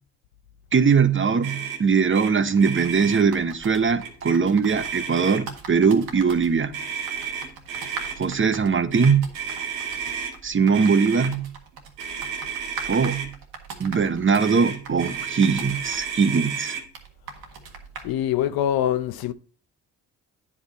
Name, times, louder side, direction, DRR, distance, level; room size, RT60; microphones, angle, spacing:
voice 1, 0.7-6.7 8.2-9.3 10.4-11.5 12.9-13.3 13.8-16.8, right 5 dB, 30° right, 0.9 m, -21 dB
Motor vehicle (road), 1.4-1.8 2.1-2.3 2.6-3.2 4.0-4.3 4.7-5.6 6.7-8.2 8.9-10.3 10.7-11.3 12.0-13.3 14.4-16.8, right 7 dB, 90° right, 1.3 m, -32 dB
sound 1, 2.5-18.2, right 5 dB, 75° right, 1.6 m, -42 dB
voice 2, 18.0-19.3, left 11 dB, 70° left, 0.7 m, -24 dB
9.6 x 5.4 x 4.1 m
hypercardioid pair, 45°, 37 cm